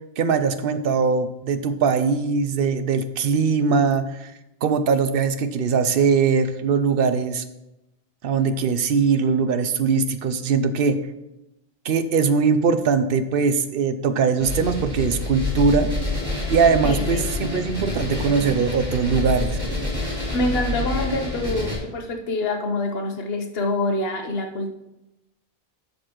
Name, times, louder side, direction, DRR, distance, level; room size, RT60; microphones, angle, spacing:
voice 1, 0.2-4.3 4.6-7.4 8.2-11.0 11.8-15.9 16.5-19.6, right 5 dB, 65° right, 10 dB, 0.8 m, -21 dB
sound 1, 14.4-21.8, left 2 dB, 20° right, 3.3 m, -27 dB
voice 2, 16.8-17.2 20.3-24.7, left 1 dB, 75° left, 5 dB, 1.2 m, -26 dB
11.0 x 6.6 x 3.0 m, 0.93 s
omnidirectional pair, 1.0 m